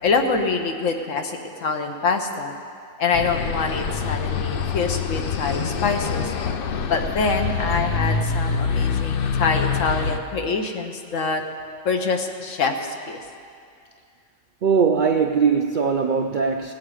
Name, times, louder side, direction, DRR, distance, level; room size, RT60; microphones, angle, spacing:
voice 1, 0.0-2.5 3.0-6.3 6.9-11.4 11.8-13.2, left 4 dB, 75° left, 4 dB, 1.3 m, -25 dB
sound 1, 3.1-10.2, left 5 dB, 60° left, 0.6 m, -25 dB
voice 2, 14.6-16.7, right 6 dB, 65° right, 4 dB, 0.5 m, -20 dB
17.5 x 8.4 x 4.9 m, 2.3 s
omnidirectional pair, 1.4 m